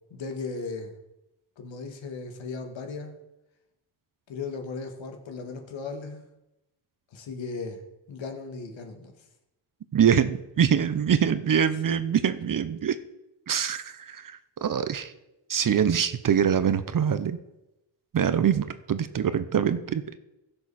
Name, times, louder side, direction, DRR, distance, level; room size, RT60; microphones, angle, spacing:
voice 1, 0.1-0.9 1.6-3.2 4.3-6.2 7.1-7.8 8.1-9.1, left 4 dB, 70° left, 4 dB, 2.0 m, -36 dB
voice 2, 9.9-13.0 13.5-15.1 15.5-17.4 18.1-20.2, right 8 dB, 45° right, 12 dB, 0.8 m, -24 dB
15.5 x 6.8 x 4.2 m, 0.94 s
cardioid pair, 95°, 48 cm